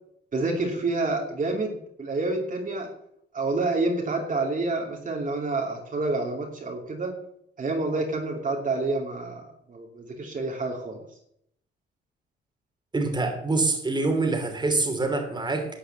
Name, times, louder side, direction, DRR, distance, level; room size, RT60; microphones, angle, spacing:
voice 1, 0.3-2.9 3.3-7.1 7.6-9.4 9.7-11.0, right 3 dB, 40° right, 1 dB, 2.9 m, -28 dB
voice 2, 12.9-15.7, right 3 dB, 20° right, 4 dB, 3.0 m, -25 dB
12.0 x 5.7 x 9.1 m, 0.72 s
cardioid pair, 90°, 20 cm